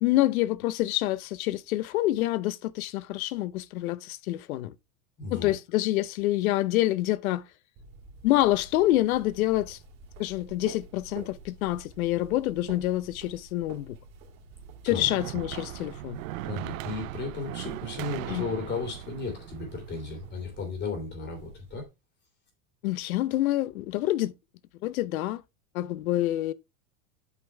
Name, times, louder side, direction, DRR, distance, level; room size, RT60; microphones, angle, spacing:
voice 1, 0.0-4.7 5.3-7.4 8.2-9.8 10.2-14.0 14.8-16.2 18.3-18.4 22.8-24.3 24.8-25.4 25.7-26.5, left 15 dB, 90° left, 0.7 m, -27 dB
voice 2, 5.2-5.5 14.8-15.1 16.4-21.9, left 3 dB, 25° left, 3.1 m, -35 dB
sound 1, 7.8-21.8, right 4 dB, 45° right, 2.9 m, -49 dB
sound 2, 14.5-20.7, right 16 dB, 70° right, 0.6 m, -39 dB
8.3 x 5.4 x 3.4 m
supercardioid pair, 155°, 41 cm